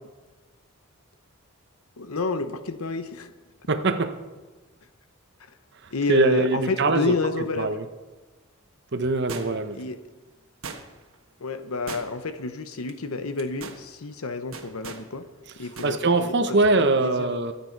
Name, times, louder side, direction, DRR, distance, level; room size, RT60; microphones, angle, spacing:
voice 1, 2.0-3.3 5.9-7.8 9.7-10.0 11.4-15.2 15.6-17.3, left 3 dB, 85° left, 10 dB, 0.9 m, -30 dB
voice 2, 3.7-4.2 6.1-7.1 7.6-7.8 8.9-9.8 15.8-17.5, right 3 dB, 55° right, 9 dB, 0.8 m, -22 dB
sound 1, 9.3-9.8 10.6-11.1 11.9-12.4 12.7-12.9 13.4-13.8 14.5-15.1 15.8-16.0 16.3-16.4, right 5 dB, 70° right, 1.4 m, -39 dB
24.5 x 8.4 x 4.5 m, 1.2 s
head